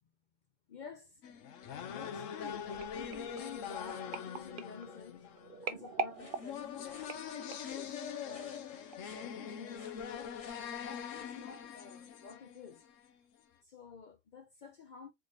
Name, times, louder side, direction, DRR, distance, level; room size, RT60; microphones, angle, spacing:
voice 1, 0.7-1.2 1.7-5.3 5.6-7.1 7.5-8.6 9.1-12.8 13.6-15.1, left 6 dB, 60° left, 0.5 m, -51 dB
sound 1, 1.2-13.1, left 7 dB, 80° left, 1.0 m, -43 dB
sound 2, 2.8-7.8 8.4-8.7 8.9-9.0, right 5 dB, 55° right, 0.7 m, -43 dB
sound 3, 6.1-11.4, left 2 dB, 30° left, 1.0 m, -59 dB
4.3 x 3.2 x 2.7 m
omnidirectional pair, 1.3 m